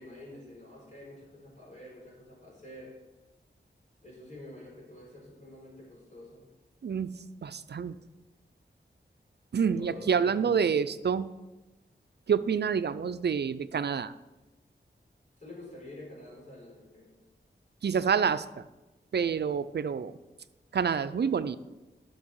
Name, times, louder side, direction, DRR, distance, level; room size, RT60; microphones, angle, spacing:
voice 1, 0.0-3.0 4.0-6.4 9.5-10.6 15.4-17.1, left 1 dB, 40° left, -4 dB, 4.0 m, -48 dB
voice 2, 7.4-7.9 9.5-11.3 12.3-14.1 17.8-18.6 19.1-20.1 20.7-21.6, right 6 dB, 60° right, 14 dB, 0.5 m, -27 dB
12.0 x 6.2 x 4.7 m, 1.1 s
wide cardioid pair, 90°, 19 cm